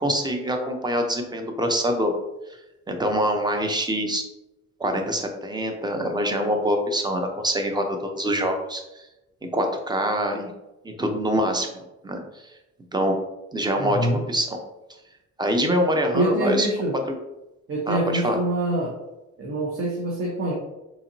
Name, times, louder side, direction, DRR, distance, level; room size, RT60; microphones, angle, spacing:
voice 1, 0.0-2.1 2.9-4.2 4.8-9.1 9.5-10.5 10.8-12.5 12.9-13.2 13.5-14.0 14.3-14.6 15.4-16.7 17.0-17.2 17.9-18.4, equal, 15° right, 4 dB, 0.7 m, -25 dB
voice 2, 13.7-14.2 16.1-16.9 17.7-19.0 19.4-20.5, right 1 dB, 45° right, -3 dB, 1.0 m, -25 dB
4.0 x 3.0 x 2.7 m, 0.98 s
cardioid pair, 90°, 30 cm